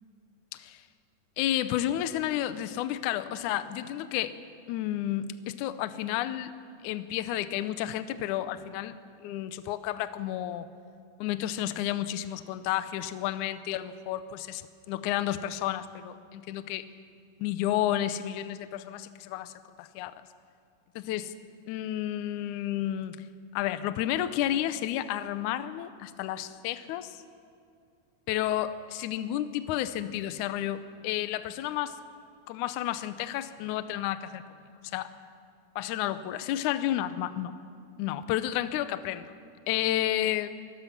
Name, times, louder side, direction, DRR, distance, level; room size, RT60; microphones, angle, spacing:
voice 1, 1.4-4.4 4.7-6.5 6.8-10.7 11.2-14.6 14.9-16.9 17.4-19.5 19.8-20.2 21.0-21.3 21.7-23.3 23.5-27.2 28.3-32.0 32.5-34.4 34.9-35.1 35.8-37.5 38.0-39.3 39.7-40.5, left 12 dB, 80° left, 12 dB, 1.8 m, -31 dB
23.5 x 19.0 x 5.9 m, 2.3 s
omnidirectional pair, 4.3 m